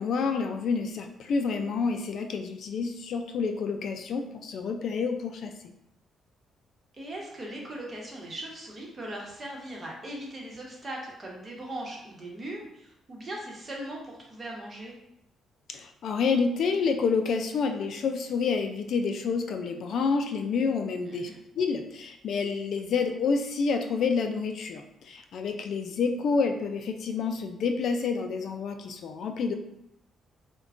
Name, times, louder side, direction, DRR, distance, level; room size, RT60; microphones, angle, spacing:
voice 1, 0.0-5.5 15.7-21.3 21.6-29.5, left 5 dB, 65° left, 5 dB, 0.3 m, -28 dB
voice 2, 6.9-14.9 21.1-21.4, right 1 dB, 30° right, -2 dB, 1.0 m, -39 dB
4.5 x 2.2 x 2.5 m, 0.79 s
cardioid pair, 90°, 0 cm